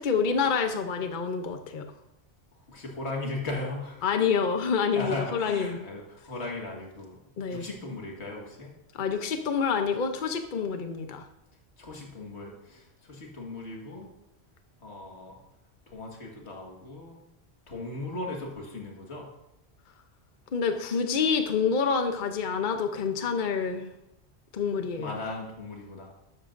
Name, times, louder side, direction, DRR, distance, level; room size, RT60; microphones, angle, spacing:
voice 1, 0.0-1.9 4.0-5.8 7.4-7.6 8.9-11.3 20.5-23.9 24.5-25.1, left 6 dB, 50° left, 6 dB, 0.9 m, -27 dB
voice 2, 2.7-4.1 4.9-7.2 7.5-8.7 11.8-14.1 14.8-15.4 15.9-17.2 17.7-19.3 25.0-26.1, left 2 dB, 85° left, -1 dB, 2.0 m, -37 dB
13.0 x 12.0 x 2.6 m, 0.85 s
omnidirectional pair, 1.1 m